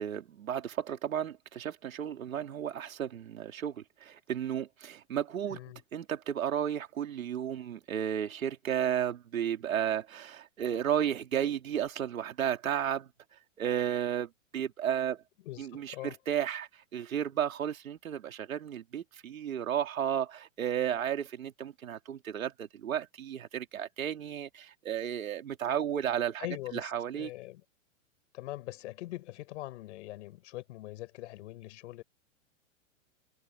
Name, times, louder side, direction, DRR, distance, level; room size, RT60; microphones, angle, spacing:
voice 1, 0.0-5.6 5.9-13.1 13.6-15.2 15.6-26.5 26.7-27.3, right 9 dB, 85° right, 3.2 m, -33 dB
voice 2, 5.5-5.8 15.4-16.2 26.4-27.6 28.3-32.0, left 17 dB, 60° left, 5.4 m, -42 dB
hypercardioid pair, 130°, 40 cm